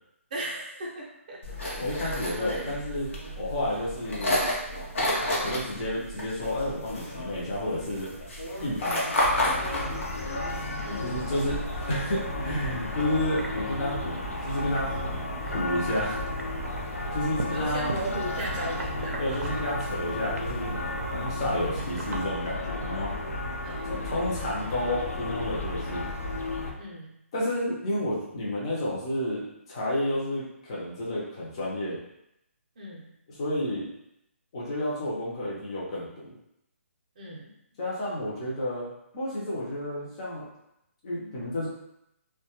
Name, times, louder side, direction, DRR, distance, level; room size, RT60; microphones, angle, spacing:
voice 1, 0.3-1.4 1.9-2.8 10.8-11.2 17.5-19.4 23.6-23.9 26.8-27.2 32.8-33.1 37.2-37.5, right 1 dB, 35° right, -2 dB, 0.5 m, -37 dB
sound 1, 1.4-12.0, left 1 dB, 60° left, 0.8 m, -31 dB
voice 2, 1.8-3.1 3.4-4.5 5.4-8.1 8.6-9.0 11.0-11.6 11.9-16.5 17.1-18.0 19.2-23.1 23.8-26.1 27.3-32.0 33.3-33.9 34.5-36.3 37.8-38.9 39.1-40.5 41.0-41.7, left 1 dB, 25° left, -6 dB, 0.5 m, -31 dB
sound 2, 9.2-26.7, left 2 dB, 80° left, 0.5 m, -34 dB
sound 3, 12.1-22.3, right 2 dB, 85° right, 0.5 m, -38 dB
2.2 x 2.1 x 2.8 m, 0.80 s
hypercardioid pair, 170°, 8 cm